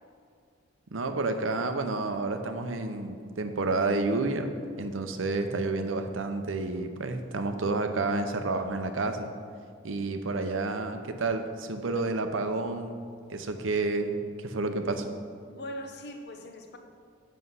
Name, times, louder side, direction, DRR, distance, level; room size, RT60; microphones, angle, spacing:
voice 1, 0.9-9.3 9.8-13.0 13.3-15.1, right 3 dB, 90° right, 7 dB, 0.7 m, -30 dB
voice 2, 15.5-16.8, left 1 dB, 60° left, 4 dB, 0.9 m, -41 dB
8.0 x 6.3 x 5.6 m, 2.2 s
head